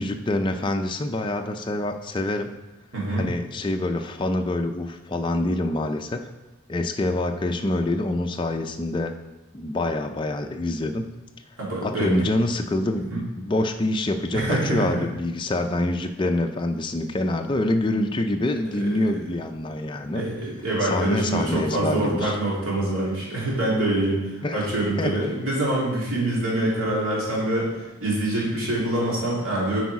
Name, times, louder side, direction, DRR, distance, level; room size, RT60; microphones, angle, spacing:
voice 1, 0.0-2.5 3.2-6.2 6.7-9.1 9.5-11.1 11.8-20.2 20.8-22.3 24.4-24.6 25.0-25.1, left 1 dB, 20° left, 5 dB, 0.4 m, -26 dB
voice 2, 2.9-3.3 11.6-12.3 13.1-13.2 14.3-15.0 18.8-18.9 20.1-29.8, right 1 dB, 80° right, -6 dB, 2.8 m, -25 dB
8.2 x 4.7 x 4.7 m, 1.1 s
head